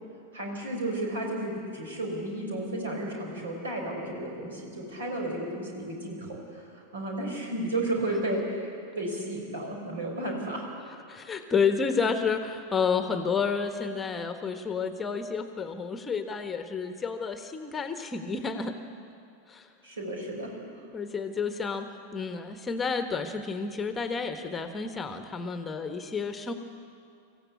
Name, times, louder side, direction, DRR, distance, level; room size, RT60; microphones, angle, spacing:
voice 1, 0.3-10.7 19.8-20.5, right 1 dB, 65° right, 1 dB, 5.8 m, -33 dB
voice 2, 11.1-18.8 19.5-19.7 20.9-26.5, left 5 dB, 15° left, 8 dB, 1.3 m, -30 dB
25.5 x 15.5 x 8.5 m, 2.5 s
figure-of-eight pair, 90°, 0 cm